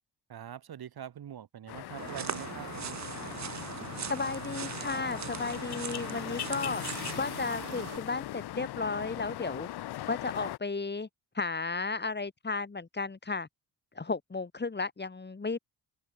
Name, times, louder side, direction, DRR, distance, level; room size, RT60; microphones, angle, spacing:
voice 1, 0.3-3.0, right 9 dB, 65° right, 1.8 m, -44 dB
sound 1, 1.7-10.6, left 14 dB, 70° left, 0.6 m, -40 dB
sound 2, 2.0-8.0, right 8 dB, 45° right, 1.0 m, -40 dB
voice 2, 4.1-6.8 7.2-9.7 10.1-11.1 11.3-13.5 14.0-15.6, left 4 dB, 25° left, 2.0 m, -34 dB
cardioid pair, 90°, 40 cm